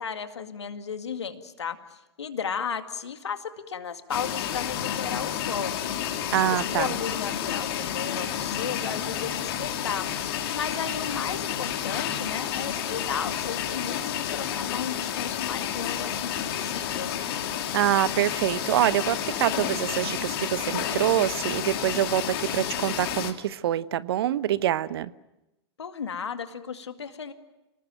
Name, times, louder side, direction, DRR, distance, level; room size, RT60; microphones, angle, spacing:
voice 1, 0.0-5.7 6.4-10.1 10.5-17.1 25.8-27.3, left 6 dB, 80° left, 2.1 m, -34 dB
sound 1, 4.1-23.3, left 10 dB, 55° left, 3.1 m, -30 dB
voice 2, 6.3-7.0 17.7-25.1, right 12 dB, 65° right, 0.9 m, -25 dB
29.0 x 19.0 x 9.1 m
hypercardioid pair, 105°, 14 cm